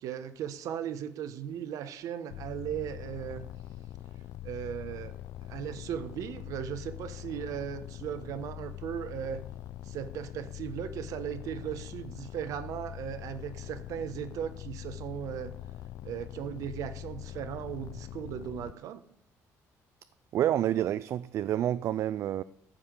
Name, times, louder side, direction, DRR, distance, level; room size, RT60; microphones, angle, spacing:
voice 1, 0.0-3.5 4.4-5.1 5.5-9.4 9.8-15.5 16.0-19.0, right 9 dB, 70° right, 1.1 m, -37 dB
sound 1, 2.3-18.7, left 13 dB, 75° left, 0.4 m, -43 dB
voice 2, 20.3-22.4, right 11 dB, 55° right, 0.4 m, -28 dB
14.0 x 5.7 x 6.6 m
cardioid pair, 150°, 6 cm